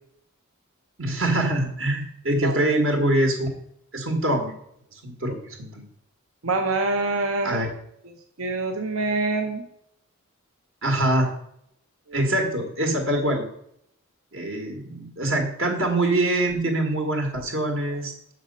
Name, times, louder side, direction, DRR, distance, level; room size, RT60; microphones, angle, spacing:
voice 1, 1.0-3.5 3.9-4.5 4.9-5.9 7.4-7.7 10.8-11.3 12.1-13.4 14.3-18.1, right 1 dB, 65° right, 2 dB, 1.6 m, -24 dB
voice 2, 6.4-7.7 8.4-9.7 12.1-12.3, right 3 dB, 85° right, 5 dB, 0.8 m, -25 dB
6.4 x 5.6 x 5.3 m, 0.74 s
head